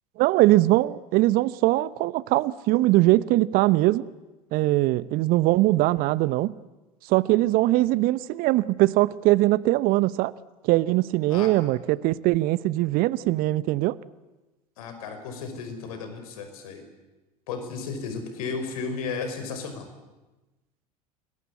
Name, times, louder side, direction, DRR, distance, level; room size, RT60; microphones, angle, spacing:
voice 1, 0.2-4.1 4.5-6.5 7.1-10.3 10.6-14.0, right 17 dB, 45° right, 0.8 m, -21 dB
voice 2, 14.8-16.8 17.5-19.9, left 5 dB, 65° left, 5.5 m, -34 dB
29.0 x 22.0 x 8.6 m
figure-of-eight pair, 75°, 20 cm